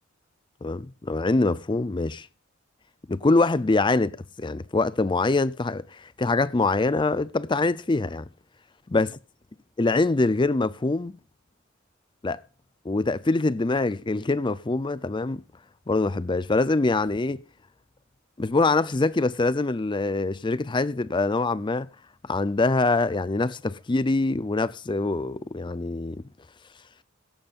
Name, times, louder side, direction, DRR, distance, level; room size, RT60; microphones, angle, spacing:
voice 1, 0.6-2.3 3.1-8.3 8.9-9.1 9.8-11.2 12.2-12.4 12.8-15.4 15.9-17.4 18.4-21.9 22.2-26.2, left 3 dB, 25° left, 0.5 m, -24 dB
16.0 x 13.0 x 2.5 m
head